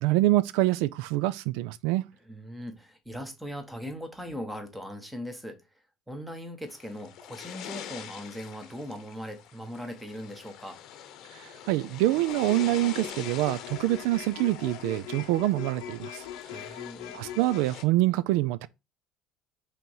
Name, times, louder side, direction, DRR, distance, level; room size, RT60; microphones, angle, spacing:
voice 1, 0.0-2.0 11.4-16.2 17.1-18.7, right 16 dB, 75° right, 0.3 m, -26 dB
voice 2, 2.2-5.6 6.1-10.8 16.5-17.2, equal, 5° right, 1.0 m, -39 dB
sound 1, 6.7-17.8, left 10 dB, 45° left, 0.9 m, -45 dB
sound 2, 12.3-17.6, left 11 dB, 90° left, 0.8 m, -41 dB
5.8 x 3.0 x 5.4 m
cardioid pair, 175°, 0 cm